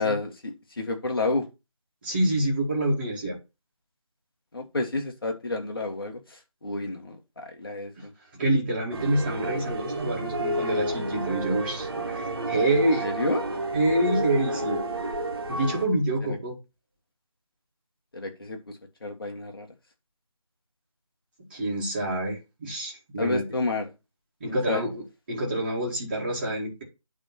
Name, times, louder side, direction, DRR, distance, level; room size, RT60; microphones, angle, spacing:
voice 1, 0.0-1.5 4.5-8.1 13.0-13.5 18.1-19.7 23.2-23.9 24.5-24.8, left 2 dB, 45° left, 1.7 m, -30 dB
voice 2, 2.0-3.4 8.0-8.1 8.3-13.1 13.7-14.8 15.5-16.6 21.5-23.5 24.4-25.0 25.3-26.8, right 1 dB, 20° right, 2.0 m, -27 dB
sound 1, 8.9-15.9, right 1 dB, 45° right, 1.8 m, -31 dB
8.8 x 3.7 x 5.8 m
figure-of-eight pair, 170°, 17 cm